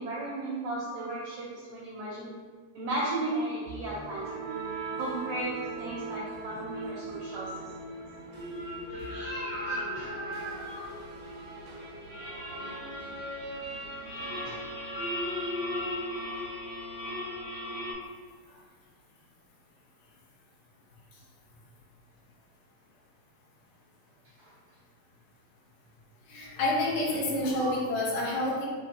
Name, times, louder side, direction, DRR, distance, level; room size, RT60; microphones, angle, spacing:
voice 1, 0.0-2.3 2.7-4.6 4.9-7.7 8.9-11.0 12.2-12.8 14.4-14.6 24.4-24.5 26.3-26.5 27.6-27.8, right 2 dB, 80° right, -6 dB, 1.4 m, -35 dB
sound 1, 3.7-15.6, right 3 dB, 65° right, 1.0 m, -42 dB
sound 2, 8.3-17.9, left 1 dB, 60° left, 1.1 m, -37 dB
voice 2, 26.3-28.7, left 2 dB, 75° left, -4 dB, 2.4 m, -28 dB
6.5 x 3.0 x 2.7 m, 1.5 s
omnidirectional pair, 3.8 m